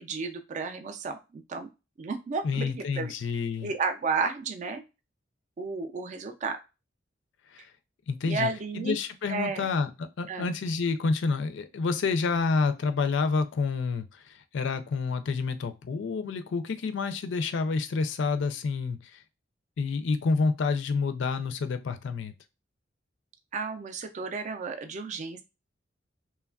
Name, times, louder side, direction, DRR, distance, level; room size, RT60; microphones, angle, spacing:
voice 1, 0.0-1.7 2.0-3.1 3.6-4.8 5.6-6.6 8.2-9.0 9.3-9.7 10.3-10.5 23.5-25.4, right 4 dB, 40° right, 7 dB, 0.4 m, -32 dB
voice 2, 2.4-3.7 7.5-7.6 8.1-19.2 19.8-22.3, left 4 dB, 70° left, 10 dB, 0.4 m, -29 dB
3.1 x 2.2 x 2.3 m, 0.27 s
head